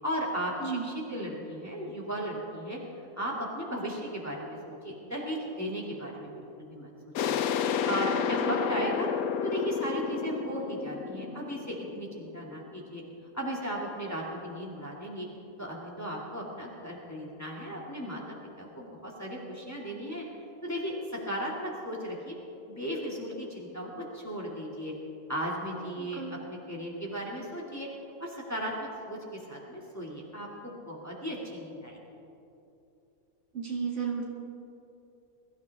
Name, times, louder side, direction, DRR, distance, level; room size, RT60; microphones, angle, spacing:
voice 1, 0.0-2.8 3.2-7.4 7.8-9.1 9.4-13.0 13.3-15.3 15.6-18.2 18.6-20.3 20.6-20.9 21.3-22.3 22.7-24.9 25.3-27.9 28.2-32.0, equal, 10° left, -4 dB, 2.3 m, -36 dB
sound 1, 7.2-12.6, left 7 dB, 80° left, 1.1 m, -31 dB
voice 2, 26.0-26.3 33.5-34.3, right 6 dB, 55° right, -2 dB, 2.3 m, -33 dB
21.5 x 14.5 x 3.5 m, 2.7 s
omnidirectional pair, 1.5 m